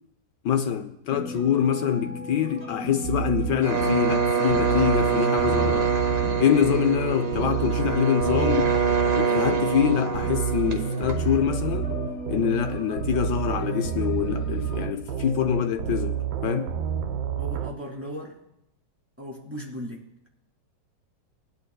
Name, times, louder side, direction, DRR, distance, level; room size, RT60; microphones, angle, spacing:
voice 1, 0.4-5.9 6.4-8.8 9.2-11.9 12.3-16.7, left 9 dB, 75° left, 1.2 m, -25 dB
sound 1, 1.1-14.8, left 2 dB, 50° left, 3.3 m, -37 dB
sound 2, 3.0-17.7, right 8 dB, 90° right, 1.4 m, -29 dB
sound 3, 3.6-11.4, right 5 dB, 65° right, 1.9 m, -25 dB
voice 2, 17.4-18.4 19.2-20.3, equal, 5° right, 2.2 m, -37 dB
20.0 x 11.0 x 2.3 m
omnidirectional pair, 1.9 m